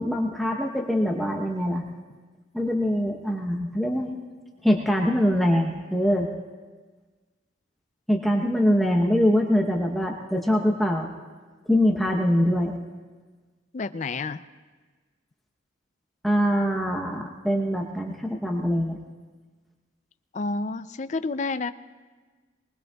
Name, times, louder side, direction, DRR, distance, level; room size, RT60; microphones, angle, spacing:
voice 1, 0.0-1.8 2.5-4.2 4.6-6.3 8.1-11.1 11.7-12.7 16.2-19.0, equal, ahead, -1 dB, 0.8 m, -23 dB
voice 2, 13.7-14.4 20.3-21.7, left 3 dB, 35° left, 11 dB, 0.4 m, -29 dB
23.0 x 20.5 x 2.3 m, 1.4 s
head